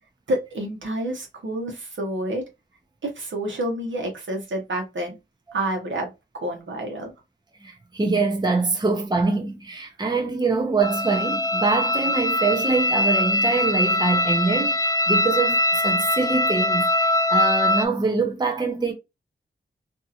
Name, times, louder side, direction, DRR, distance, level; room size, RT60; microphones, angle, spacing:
voice 1, 0.3-2.4 3.0-5.2 5.5-7.1, right 1 dB, 80° right, 1.0 m, -29 dB
voice 2, 7.6-18.9, right 3 dB, 20° right, 0.6 m, -24 dB
sound 1, 10.8-17.8, left 1 dB, 20° left, 0.4 m, -22 dB
2.7 x 2.5 x 2.8 m
wide cardioid pair, 90°, 19 cm